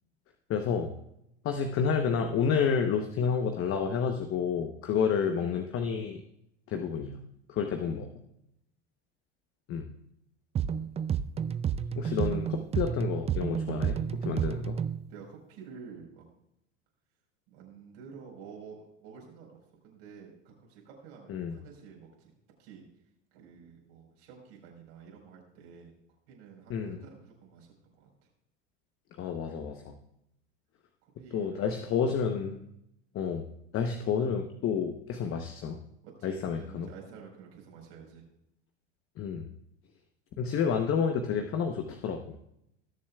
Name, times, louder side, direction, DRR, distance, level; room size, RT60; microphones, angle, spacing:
voice 1, 0.5-0.9 1.4-6.2 6.7-7.2 7.5-8.1 9.7-9.9 12.0-14.8 21.3-21.6 26.7-27.0 29.2-30.0 31.3-32.6 33.1-33.4 33.7-35.8 36.2-36.9 39.2-39.5 40.4-42.3, left 6 dB, 40° left, 6 dB, 1.0 m, -30 dB
voice 2, 10.5-11.1 14.4-14.5 15.1-16.2 17.5-22.3 22.6-22.8 23.3-25.9 26.3-28.1 31.0-31.8 36.0-38.2, right 6 dB, 70° right, -1 dB, 4.5 m, -50 dB
sound 1, 10.6-15.1, right 8 dB, 20° right, 0.4 m, -31 dB
19.0 x 7.2 x 2.4 m, 0.80 s
hypercardioid pair, 95°, 32 cm